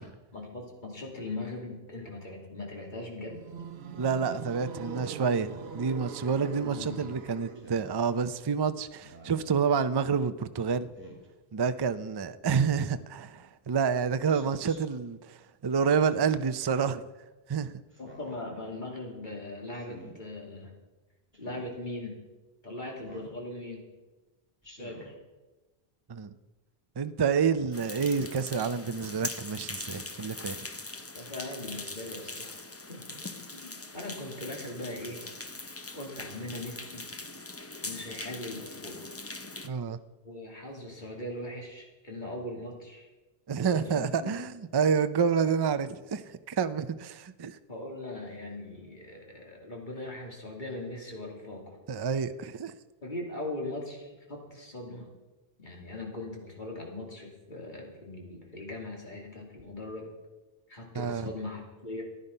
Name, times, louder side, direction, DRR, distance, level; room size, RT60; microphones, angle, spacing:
voice 1, 0.3-3.4 6.2-7.3 18.0-20.7 21.4-22.2 22.6-23.8 24.6-25.1 31.1-32.5 32.9-33.2 33.5-35.4 35.9-37.1 37.8-39.1 40.2-43.1 43.5-44.4 47.7-51.8 53.0-55.1 55.6-60.1 60.7-62.0, left 2 dB, 50° left, 2.9 m, -40 dB
sound 1, 3.2-7.9, right 6 dB, 75° right, 1.0 m, -42 dB
voice 2, 4.0-10.9 11.5-17.0 17.5-17.7 26.1-26.3 27.0-30.6 39.6-40.0 43.5-46.2 46.5-47.6 51.9-52.7 60.9-61.3, right 6 dB, 35° right, 0.4 m, -28 dB
Speech synthesizer, 7.6-7.9 9.0-9.5 10.9-11.3 12.4-13.0 14.3-14.8 16.1-16.6 17.9-18.4 19.7-20.1 21.3-21.7 23.0-23.4 24.6-25.1, equal, 10° right, 2.7 m, -50 dB
sound 2, 27.7-39.7, left 2 dB, 15° left, 0.5 m, -41 dB
15.0 x 10.5 x 5.5 m
omnidirectional pair, 1.0 m